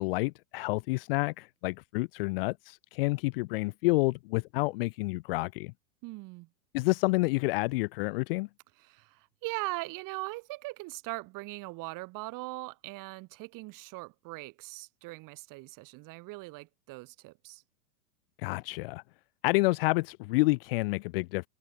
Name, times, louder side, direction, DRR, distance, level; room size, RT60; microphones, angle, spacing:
voice 1, 0.0-5.7 6.7-8.5 18.4-19.0 19.4-21.5, left 23 dB, 35° left, 0.6 m, -29 dB
voice 2, 6.0-6.5 8.8-17.6, right 23 dB, 40° right, 6.0 m, -40 dB
hypercardioid pair, 105°, 48 cm